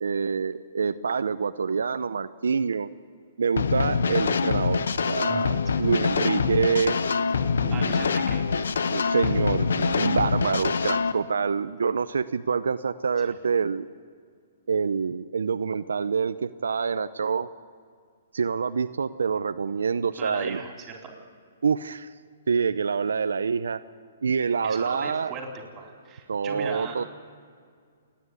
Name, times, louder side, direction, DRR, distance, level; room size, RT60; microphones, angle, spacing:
voice 1, 0.0-2.9 3.4-7.0 7.6-8.1 8.9-13.9 14.7-17.5 18.3-20.6 21.6-22.1 22.5-23.8 24.2-25.3 26.3-27.1, right 5 dB, 85° right, 11 dB, 0.6 m, -26 dB
sound 1, 3.6-11.1, left 5 dB, 80° left, 0.9 m, -25 dB
voice 2, 7.7-8.5 9.0-9.2 13.3-13.4 20.1-21.1 24.6-25.5 25.8-27.0, right 5 dB, 20° right, 2 dB, 4.0 m, -38 dB
27.5 x 10.5 x 9.6 m, 2.1 s
hypercardioid pair, 145°, 0 cm